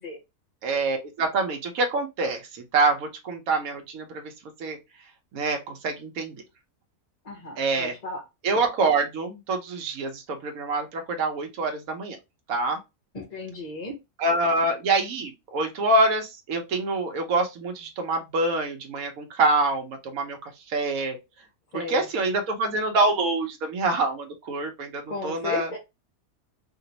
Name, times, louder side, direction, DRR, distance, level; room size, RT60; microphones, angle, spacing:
voice 1, 0.6-4.3 4.6-4.8 5.3-6.4 7.6-7.9 8.4-12.2 12.5-12.8 14.2-20.4 20.7-21.2 21.7-25.7, right 2 dB, 80° right, 1.2 m, -26 dB
voice 2, 7.2-8.2 13.1-13.9 21.7-22.1 25.1-25.8, left 2 dB, 35° left, 0.8 m, -35 dB
2.9 x 2.9 x 2.7 m
omnidirectional pair, 1.5 m